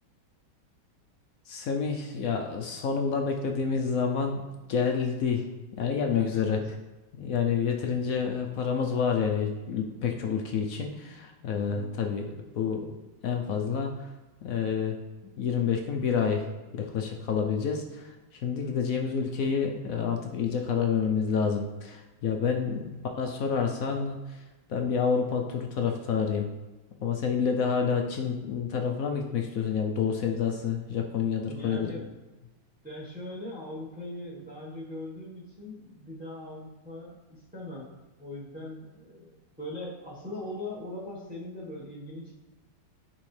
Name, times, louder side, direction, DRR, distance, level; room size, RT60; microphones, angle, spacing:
voice 1, 1.5-4.4 4.7-5.4 5.8-6.6 7.1-12.2 12.5-12.9 13.2-14.1 14.4-14.9 15.4-16.5 16.7-18.1 18.4-24.2 24.7-26.5 27.0-31.9, left 6 dB, 70° left, 3 dB, 0.9 m, -28 dB
voice 2, 6.2-6.7 7.6-7.7 11.7-12.0 18.6-18.8 22.6-22.8 31.5-32.1 32.8-37.9 38.2-42.3, left 1 dB, 5° right, -5 dB, 1.1 m, -41 dB
10.0 x 3.5 x 3.2 m, 1.1 s
omnidirectional pair, 1.9 m